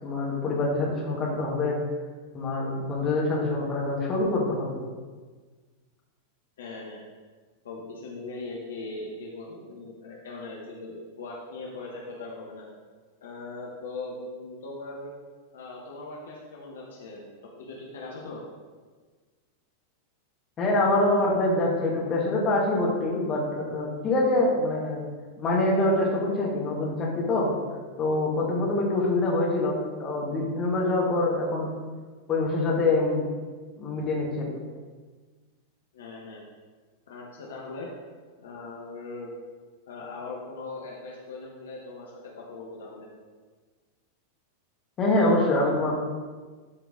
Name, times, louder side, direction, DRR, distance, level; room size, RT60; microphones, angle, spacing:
voice 1, 0.0-1.8 2.3-4.8 20.6-25.0 25.4-27.5 28.0-31.7 32.3-33.2 33.8-34.5 45.0-46.0, left 2 dB, 25° left, -3 dB, 2.2 m, -25 dB
voice 2, 6.6-7.0 7.6-12.7 13.2-15.1 15.5-17.2 17.6-18.4 35.9-36.4 37.1-37.9 38.4-39.3 39.9-43.1, left 3 dB, 65° left, -3 dB, 1.4 m, -40 dB
13.0 x 4.6 x 3.9 m, 1.4 s
figure-of-eight pair, 90°, 0 cm